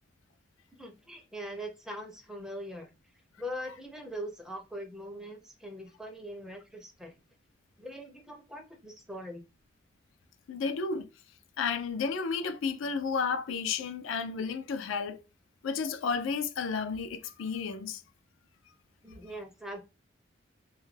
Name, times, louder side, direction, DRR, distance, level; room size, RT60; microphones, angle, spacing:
voice 1, 0.7-2.9 3.4-7.1 7.8-9.4 19.0-19.8, equal, 5° right, 0.4 m, -41 dB
voice 2, 10.5-11.1 11.6-15.2 15.6-18.0, left 5 dB, 85° left, 0.4 m, -32 dB
2.3 x 2.1 x 3.1 m
head